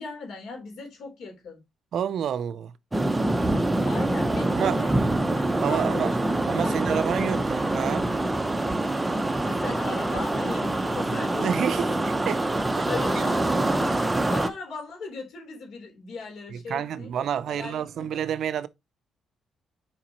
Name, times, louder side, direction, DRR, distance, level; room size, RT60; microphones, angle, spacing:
voice 1, 0.0-1.6 3.8-5.1 5.3-6.2 6.6-7.1 9.4-11.5 11.8-12.0 12.9-14.0 14.3-17.1 17.5-18.2, left 4 dB, 70° left, 3.6 m, -38 dB
voice 2, 1.9-2.7 4.5-4.8 5.6-6.1 6.5-8.1 11.1-12.9 16.5-18.7, right 9 dB, 65° right, 0.5 m, -29 dB
sound 1, 2.9-14.5, right 2 dB, 15° right, 0.8 m, -25 dB
7.1 x 5.0 x 3.0 m
cardioid pair, 90°, 0 cm